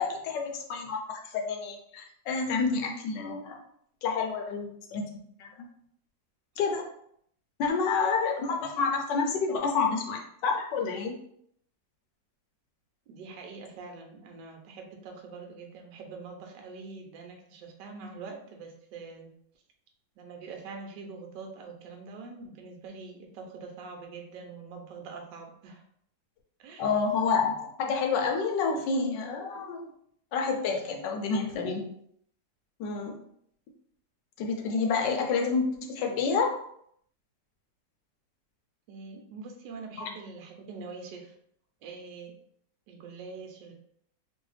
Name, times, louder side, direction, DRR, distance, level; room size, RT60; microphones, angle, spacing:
voice 1, 0.0-3.5 4.0-5.0 5.4-5.7 6.6-6.8 7.6-11.1 26.8-29.8 30.3-31.8 32.8-33.2 34.4-36.5, left 5 dB, 75° left, 2 dB, 1.2 m, -29 dB
voice 2, 13.1-19.3 20.2-25.8 26.6-26.9 38.9-41.3 41.8-42.3 42.9-43.7, right 4 dB, 80° right, 3 dB, 1.2 m, -44 dB
3.1 x 2.6 x 3.1 m, 0.69 s
omnidirectional pair, 2.0 m